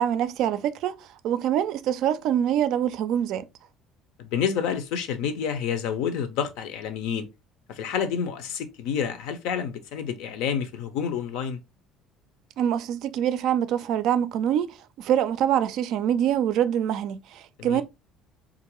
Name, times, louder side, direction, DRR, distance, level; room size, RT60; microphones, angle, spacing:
voice 1, 0.0-3.5 12.6-17.8, right 10 dB, 65° right, 0.3 m, -25 dB
voice 2, 4.2-7.3 7.7-11.6 17.6-17.8, left 7 dB, 85° left, 0.6 m, -29 dB
3.8 x 2.5 x 2.9 m
cardioid pair, 145°, 0 cm